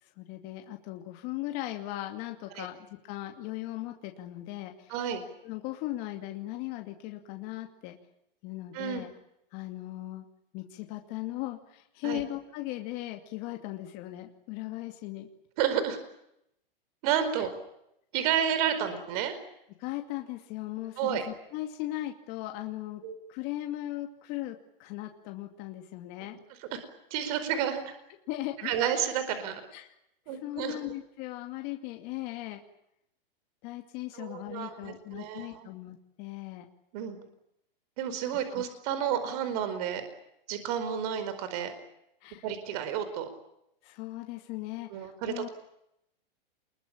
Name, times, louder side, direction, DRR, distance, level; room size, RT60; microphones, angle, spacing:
voice 1, 0.0-4.9 5.4-8.0 8.4-9.1 9.5-10.2 10.5-15.3 17.3-17.4 19.8-23.0 23.3-26.4 27.4-27.5 28.3-28.7 29.7-29.9 30.3-32.6 33.6-36.7 38.3-38.6 42.2-42.4 43.8-45.5, left 15 dB, 35° left, 4 dB, 2.5 m, -38 dB
voice 2, 4.9-5.2 8.7-9.0 12.0-12.2 15.6-16.0 17.0-17.5 18.1-19.4 21.0-21.2 23.0-23.1 26.7-26.8 27.1-27.8 28.6-29.6 30.3-30.8 34.1-35.7 36.9-37.2 38.0-40.0 40.5-41.7 42.4-43.3 44.9-45.5, right 9 dB, 40° right, 11 dB, 4.7 m, -30 dB
28.0 x 22.0 x 8.8 m, 0.80 s
hypercardioid pair, 155°, 29 cm